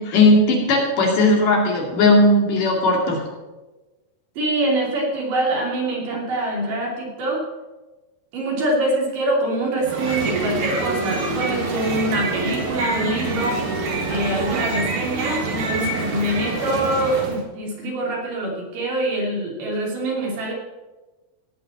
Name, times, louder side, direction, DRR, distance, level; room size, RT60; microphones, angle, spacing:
voice 1, 0.0-3.2, left 2 dB, 70° left, 0 dB, 3.9 m, -17 dB
voice 2, 4.4-7.4 8.3-13.6 14.1-20.5, right 1 dB, 75° right, -2 dB, 4.5 m, -24 dB
sound 1, 9.8-17.4, right 3 dB, 45° right, 2.6 m, -26 dB
17.0 x 6.0 x 7.1 m, 1.2 s
omnidirectional pair, 3.8 m